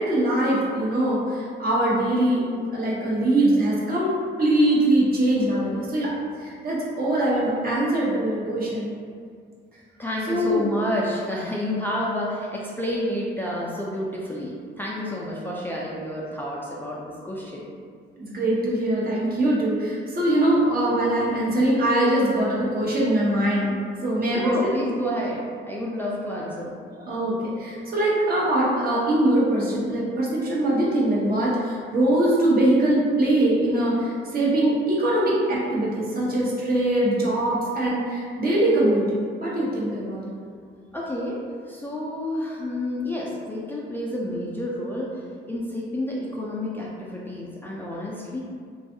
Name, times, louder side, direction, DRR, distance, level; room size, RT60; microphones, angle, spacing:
voice 1, 0.0-4.1 4.4-6.1 6.4-8.9 10.3-10.6 18.2-23.7 24.0-24.7 26.9-40.3, right 1 dB, 50° right, -5 dB, 0.8 m, -22 dB
voice 2, 10.0-17.7 24.3-26.7 40.9-48.4, left 1 dB, 10° left, -5 dB, 0.3 m, -29 dB
2.5 x 2.3 x 2.6 m, 2.1 s
cardioid pair, 90°, 20 cm